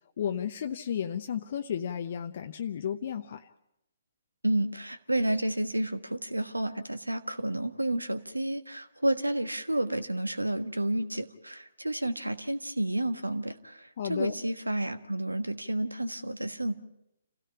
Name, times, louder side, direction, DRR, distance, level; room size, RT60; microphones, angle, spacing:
voice 1, 0.2-3.5 14.0-14.3, left 8 dB, 45° left, 6 dB, 0.8 m, -33 dB
voice 2, 4.4-16.7, right 1 dB, 85° right, 10 dB, 1.4 m, -30 dB
28.5 x 16.5 x 5.7 m, 0.82 s
figure-of-eight pair, 130°, 0 cm